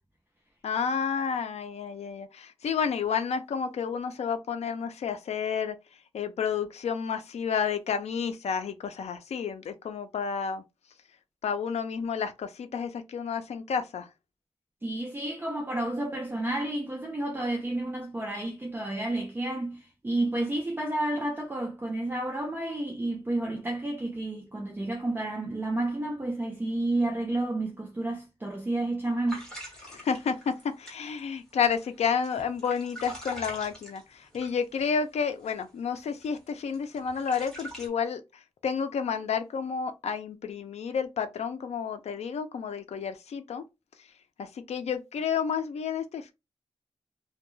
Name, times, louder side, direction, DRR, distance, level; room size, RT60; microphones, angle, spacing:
voice 1, 0.6-5.8 6.1-10.6 11.4-14.1 29.9-38.2 38.6-43.6 44.4-46.3, left 6 dB, 85° left, 0.4 m, -30 dB
voice 2, 14.8-29.5, right 2 dB, 20° right, 0.4 m, -31 dB
sound 1, 29.3-34.9 35.4-35.6 35.9-37.9, right 1 dB, 5° left, 1.1 m, -44 dB
2.2 x 2.2 x 3.0 m
wide cardioid pair, 155°, 11 cm